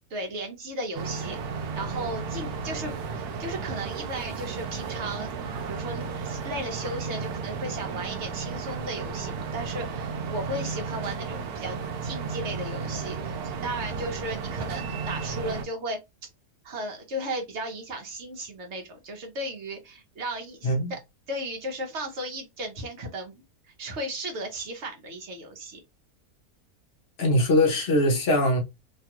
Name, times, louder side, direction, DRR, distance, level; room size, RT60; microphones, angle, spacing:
voice 1, 0.1-1.4 1.8-5.3 5.7-16.0 16.6-21.0 21.3-23.4 23.8-25.8, right 1 dB, 50° right, 1.2 m, -35 dB
sound 1, 0.9-15.6, right 5 dB, 85° right, 1.2 m, -33 dB
voice 2, 27.2-28.6, left 1 dB, 50° left, 0.9 m, -22 dB
3.1 x 2.3 x 2.8 m
omnidirectional pair, 1.6 m